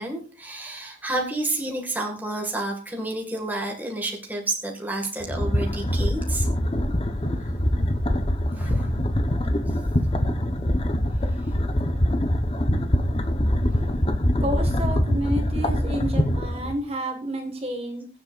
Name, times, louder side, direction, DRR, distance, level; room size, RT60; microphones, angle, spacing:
voice 1, 0.0-6.5 8.5-8.9 9.7-9.8, right 2 dB, 10° right, 0 dB, 2.0 m, -30 dB
sound 1, 5.2-16.7, equal, 30° left, 1.1 m, -24 dB
voice 2, 14.4-18.1, right 1 dB, 35° right, 3 dB, 1.8 m, -30 dB
23.0 x 7.6 x 2.5 m, 0.38 s
head